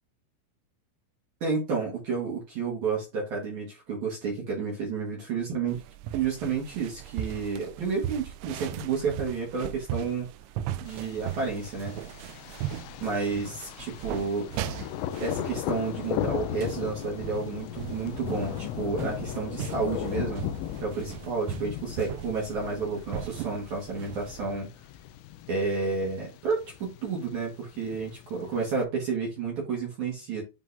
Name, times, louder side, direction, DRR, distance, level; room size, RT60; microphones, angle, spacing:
voice 1, 1.4-5.8 6.1-10.3 10.8-12.0 13.0-14.5 15.2-20.4 20.8-24.7 25.5-30.4, right 5 dB, 60° right, -3 dB, 2.0 m, -31 dB
sound 1, 5.7-24.4, right 11 dB, 85° right, 2.8 m, -39 dB
Thunder, 10.9-28.8, left 11 dB, 85° left, 2.6 m, -37 dB
10.5 x 3.8 x 2.7 m, 0.28 s
omnidirectional pair, 5.8 m